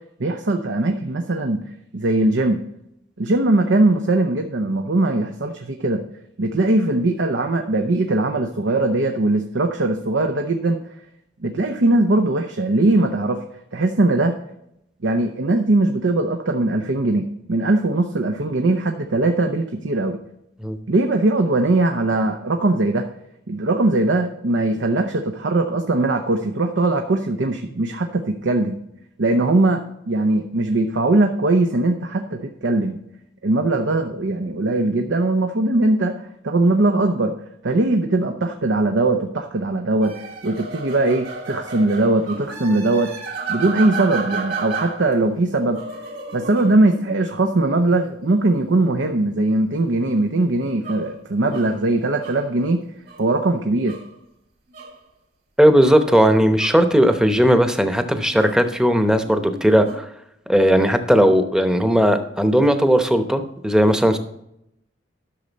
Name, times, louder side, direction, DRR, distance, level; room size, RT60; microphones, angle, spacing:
voice 1, 0.2-1.6 1.9-2.6 3.2-6.0 6.4-10.8 11.4-13.4 13.7-14.3 15.0-20.2 20.9-23.1 23.5-28.8 29.2-33.0 33.4-37.3 37.6-43.1 43.5-45.8 46.3-52.8 53.2-54.0, right 2 dB, 80° right, 5 dB, 0.8 m, -20 dB
sound 1, 40.0-45.2 45.5-47.6 50.6-52.5 53.1-53.2 53.9-54.1 54.7-55.0 55.7-56.0 56.3-57.8 58.2-58.6 59.2-60.0, right 4 dB, 55° right, 2.7 m, -33 dB
voice 2, 55.6-60.1 60.5-64.2, equal, 5° right, 7 dB, 0.8 m, -17 dB
11.5 x 6.6 x 4.1 m, 0.78 s
head